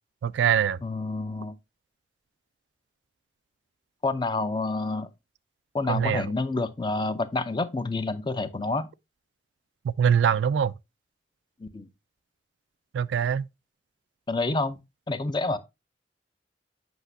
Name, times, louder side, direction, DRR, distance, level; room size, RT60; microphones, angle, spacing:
voice 1, 0.2-0.8 5.9-6.3 9.8-10.7 12.9-13.5, right 8 dB, 90° right, 0.3 m, -23 dB
voice 2, 0.8-1.6 4.0-5.1 5.7-8.9 11.6-11.9 14.3-14.8 15.1-15.6, left 3 dB, 25° left, 0.5 m, -28 dB
7.9 x 5.7 x 2.6 m
head